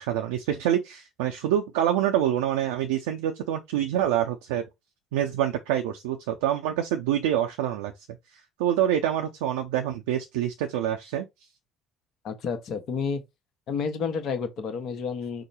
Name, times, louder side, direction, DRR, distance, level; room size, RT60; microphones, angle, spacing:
voice 1, 0.0-4.6 5.1-7.9 8.6-11.3, right 11 dB, 70° right, 0.5 m, -26 dB
voice 2, 12.2-13.2 13.7-15.4, left 5 dB, 55° left, 1.0 m, -30 dB
4.9 x 2.1 x 4.1 m
figure-of-eight pair, 55°, 0 cm